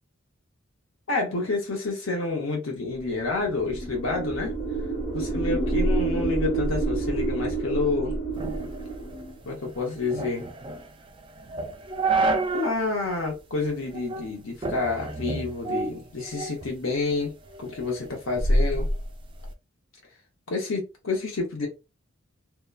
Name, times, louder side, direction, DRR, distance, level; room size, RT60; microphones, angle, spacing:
voice 1, 1.1-4.5 5.1-8.1 9.5-10.5 12.5-18.9 20.5-21.7, left 3 dB, 75° left, 0.8 m, -29 dB
sound 1, 3.2-9.4, right 3 dB, 35° left, 0.9 m, -28 dB
sound 2, 8.4-12.8 13.2-13.3 13.9-14.3 14.6-16.7 17.1-19.5, right 2 dB, 25° right, 0.3 m, -29 dB
2.8 x 2.2 x 2.3 m
head